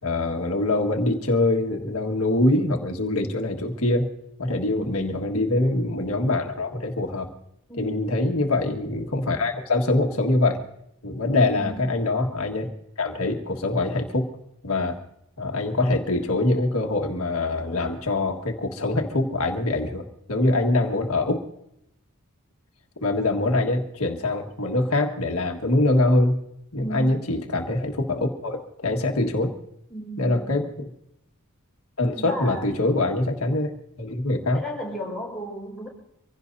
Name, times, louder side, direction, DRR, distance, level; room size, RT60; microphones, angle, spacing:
voice 1, 0.0-4.1 4.4-7.3 7.8-10.6 11.0-12.7 13.0-14.3 14.6-15.0 15.4-21.4 23.0-26.4 26.7-29.5 30.2-30.9 32.0-33.7 34.0-34.6, left 2 dB, 70° left, 3 dB, 1.7 m, -24 dB
voice 2, 4.5-4.9 7.7-8.1 11.4-11.8 26.8-27.1 29.9-30.6 32.1-32.7 34.5-35.9, equal, ahead, -4 dB, 5.1 m, -34 dB
25.5 x 16.5 x 2.7 m, 0.79 s
head